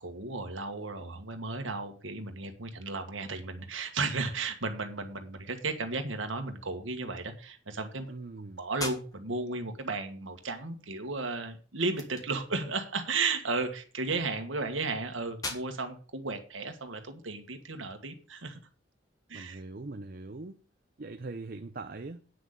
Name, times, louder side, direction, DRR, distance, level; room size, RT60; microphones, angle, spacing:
voice 1, 0.0-8.1 8.6-18.6 19.3-19.6, right 3 dB, 80° right, 1.6 m, -34 dB
voice 2, 8.1-8.6 19.3-20.6 21.0-22.2, right 3 dB, 45° right, 0.6 m, -41 dB
sound 1, 8.7-17.6, left 2 dB, 20° left, 1.5 m, -46 dB
9.3 x 6.2 x 6.5 m
head